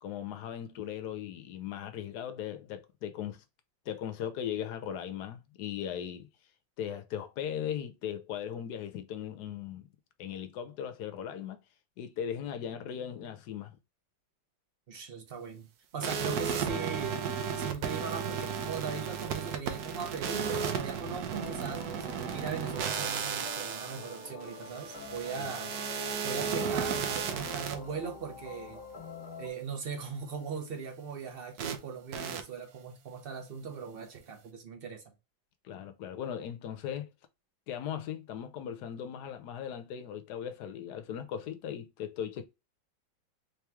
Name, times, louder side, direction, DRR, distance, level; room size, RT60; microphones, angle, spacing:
voice 1, 0.0-3.4 3.9-6.3 6.8-9.9 10.2-11.6 12.0-13.8 25.4-25.5 35.6-37.1 37.7-42.5, left 9 dB, 70° left, 1.1 m, -38 dB
voice 2, 14.9-17.2 17.6-28.8 29.4-35.0, right 6 dB, 45° right, 0.8 m, -39 dB
sound 1, 16.0-27.7 31.6-31.8 32.1-32.4, right 7 dB, 65° right, 1.0 m, -34 dB
sound 2, 21.3-29.5, left 3 dB, 30° left, 0.8 m, -45 dB
3.6 x 3.0 x 3.3 m
omnidirectional pair, 2.0 m